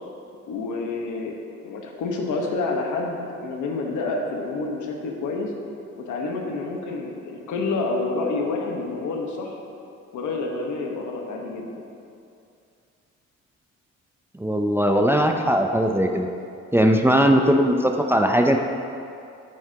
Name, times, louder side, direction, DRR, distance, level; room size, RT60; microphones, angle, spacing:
voice 1, 0.5-1.3 1.6-5.5 6.0-9.6 10.1-11.8, left 3 dB, 75° left, 1 dB, 1.2 m, -28 dB
voice 2, 14.4-16.3 16.7-18.6, equal, 10° right, 3 dB, 0.5 m, -19 dB
9.2 x 8.5 x 2.9 m, 2.5 s
cardioid pair, 90°, 30 cm